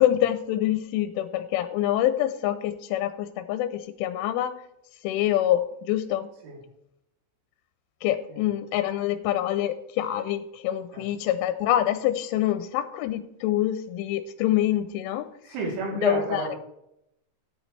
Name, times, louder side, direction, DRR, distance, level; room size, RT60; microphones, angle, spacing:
voice 1, 0.0-4.6 5.0-6.3 8.0-15.3 16.0-16.6, left 12 dB, 90° left, 10 dB, 3.1 m, -26 dB
voice 2, 15.5-16.6, right 3 dB, 75° right, -1 dB, 5.6 m, -30 dB
15.5 x 9.1 x 3.3 m, 0.79 s
omnidirectional pair, 5.6 m